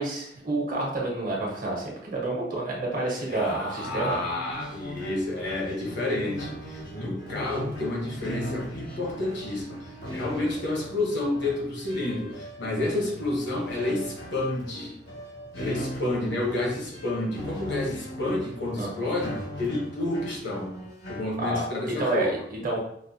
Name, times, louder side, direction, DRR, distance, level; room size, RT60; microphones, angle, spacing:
voice 1, 0.0-4.2 18.8-18.9 21.4-22.8, right 2 dB, 50° right, -3 dB, 1.1 m, -29 dB
voice 2, 3.3-15.0 15.5-20.7 21.1-22.4, left 2 dB, 65° left, -1 dB, 1.0 m, -30 dB
sound 1, 3.8-21.3, equal, 90° left, 1.4 m, -39 dB
5.2 x 2.2 x 2.7 m, 0.73 s
head